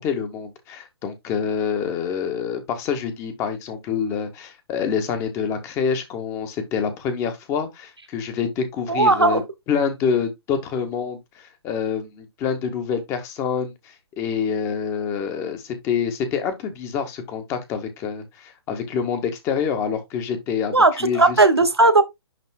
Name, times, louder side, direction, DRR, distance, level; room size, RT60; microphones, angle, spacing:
voice 1, 0.0-9.4 9.7-21.4, left 6 dB, 20° left, 1.5 m, -26 dB
voice 2, 8.9-9.4 20.7-22.0, right 2 dB, 80° right, 1.4 m, -16 dB
11.0 x 3.8 x 2.3 m
figure-of-eight pair, 130°, 13 cm